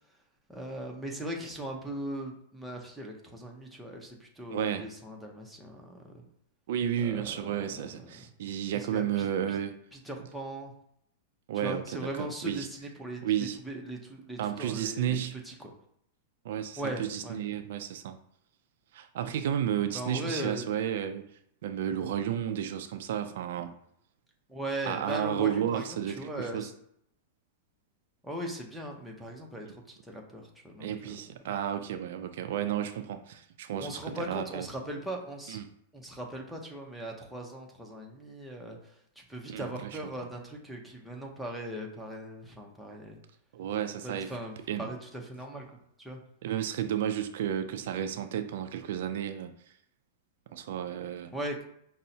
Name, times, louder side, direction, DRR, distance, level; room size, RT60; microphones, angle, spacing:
voice 1, 0.5-6.2 7.0-8.2 8.9-9.6 10.1-10.7 11.6-13.2 13.6-15.1 15.5-15.7 16.8-17.4 19.9-20.6 24.5-26.7 28.2-31.2 33.7-35.6 35.9-38.8 39.2-43.2 44.0-45.6 46.0-46.2 51.3-51.6, right 1 dB, ahead, -1 dB, 0.6 m, -39 dB
voice 2, 4.5-4.8 6.7-9.8 11.5-12.7 13.2-13.6 14.4-15.4 16.4-18.2 18.9-21.2 21.6-23.7 24.9-26.7 30.8-34.7 35.5-35.7 39.5-40.0 43.5-44.3 44.7-44.9 46.4-49.5 50.5-51.3, right 10 dB, 65° right, 8 dB, 0.3 m, -32 dB
5.4 x 2.0 x 2.7 m, 0.71 s
supercardioid pair, 150°, 0 cm